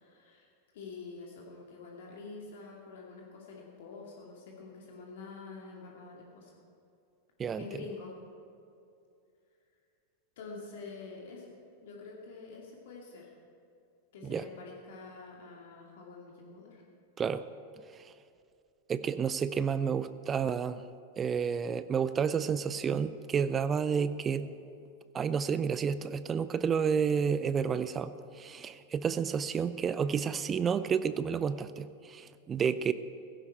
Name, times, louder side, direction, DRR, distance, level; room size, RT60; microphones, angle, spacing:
voice 1, 0.0-6.5 7.6-8.2 10.4-13.3 14.1-16.8, left 4 dB, 55° left, -2 dB, 2.4 m, -47 dB
voice 2, 18.9-20.8 21.2-24.5 25.1-32.9, right 6 dB, 20° right, 14 dB, 0.5 m, -30 dB
16.5 x 16.0 x 4.7 m, 2.6 s
figure-of-eight pair, 90°, 0 cm